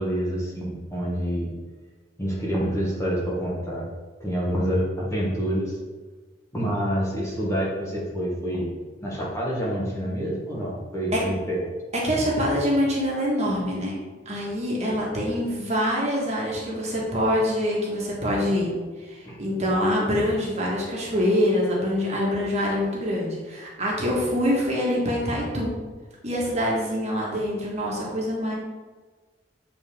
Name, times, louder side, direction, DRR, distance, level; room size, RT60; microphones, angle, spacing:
voice 1, 0.0-1.5 2.2-3.9 4.2-5.8 6.5-8.7 9.0-11.6 19.2-19.4, equal, 15° left, -5 dB, 1.4 m, -27 dB
voice 2, 12.0-14.0 14.2-18.7 19.1-25.7 26.2-28.6, equal, 35° right, -4 dB, 1.5 m, -25 dB
7.9 x 4.2 x 3.7 m, 1.4 s
head